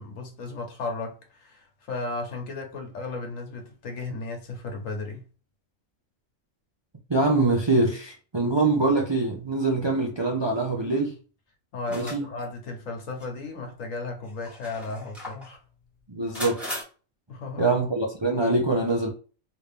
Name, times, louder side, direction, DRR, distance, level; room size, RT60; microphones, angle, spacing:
voice 1, 0.0-5.3 11.7-15.6 17.3-17.8, left 3 dB, 80° left, 1.4 m, -35 dB
voice 2, 7.1-11.1 11.9-12.2 16.1-16.6 17.6-19.1, right 2 dB, 30° right, 0.5 m, -24 dB
sound 1, 11.8-12.5 13.2-13.3 14.3-15.5 16.3-16.8, equal, ahead, 1.2 m, -37 dB
3.2 x 2.7 x 3.3 m
omnidirectional pair, 1.4 m